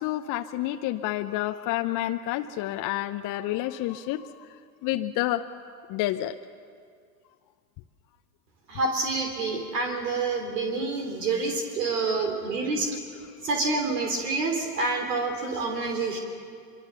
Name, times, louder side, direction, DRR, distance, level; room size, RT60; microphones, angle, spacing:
voice 1, 0.0-4.3 4.8-5.5 5.9-6.4 12.1-12.3, left 15 dB, 40° left, 7 dB, 0.8 m, -29 dB
voice 2, 8.7-12.9 13.4-16.2, right 3 dB, 70° right, 3 dB, 3.6 m, -27 dB
24.5 x 24.0 x 6.9 m, 2.2 s
hypercardioid pair, 85°, 49 cm